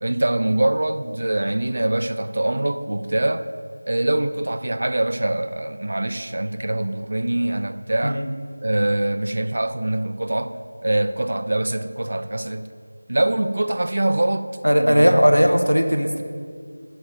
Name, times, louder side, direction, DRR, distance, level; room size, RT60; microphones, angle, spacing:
voice 1, 0.0-3.5 3.9-8.2 8.6-12.7 13.1-14.5 14.8-15.5, right 1 dB, 45° right, 11 dB, 0.3 m, -24 dB
voice 2, 14.6-16.2, equal, 90° right, 6 dB, 0.7 m, -17 dB
10.5 x 4.3 x 4.0 m, 2.1 s
figure-of-eight pair, 170°, 0 cm